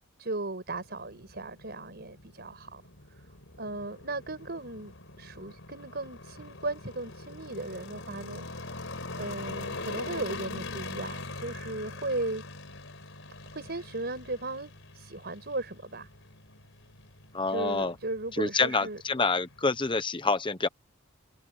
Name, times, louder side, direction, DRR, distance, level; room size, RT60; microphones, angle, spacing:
voice 1, 0.2-2.8 3.1-3.3 3.6-8.7 9.2-12.4 13.5-16.1 17.5-19.0, right 2 dB, 50° right, 6.0 m, -36 dB
sound 1, 0.7-20.0, left 3 dB, 65° left, 5.0 m, -43 dB
voice 2, 17.3-17.9 18.4-20.7, left 3 dB, 25° left, 1.0 m, -27 dB
head